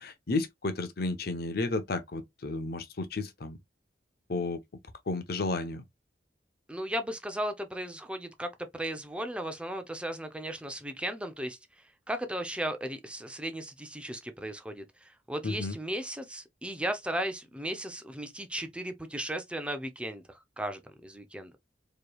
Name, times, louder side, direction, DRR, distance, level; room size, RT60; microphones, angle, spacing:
voice 1, 0.0-3.6 4.3-4.6 5.1-5.8 15.4-15.8, left 3 dB, 60° left, 0.8 m, -32 dB
voice 2, 6.7-11.6 12.1-21.6, right 1 dB, 5° right, 0.6 m, -36 dB
4.9 x 3.0 x 2.3 m
head